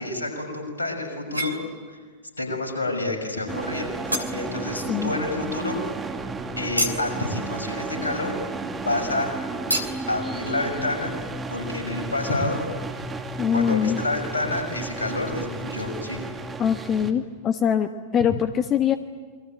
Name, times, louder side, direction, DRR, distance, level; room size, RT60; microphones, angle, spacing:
voice 1, 0.0-1.5 1.9-2.0 2.4-3.9 4.3-5.8 6.6-8.3 8.8-9.3 10.1-11.1 11.5-12.6 13.5-16.2, left 2 dB, 75° left, 3 dB, 6.5 m, -28 dB
sound 1, 1.3-2.0 2.4-2.9 3.4-3.5 3.8-4.9 5.2-8.9 9.2-9.3 9.7-10.1, right 1 dB, 85° right, 2.8 m, -31 dB
sound 2, 3.5-17.1, right 3 dB, 15° right, 2.4 m, -33 dB
voice 2, 13.4-14.0 16.6-19.0, left 8 dB, 30° left, 9 dB, 1.1 m, -23 dB
28.0 x 22.5 x 9.1 m, 1.5 s
figure-of-eight pair, 90°, 0 cm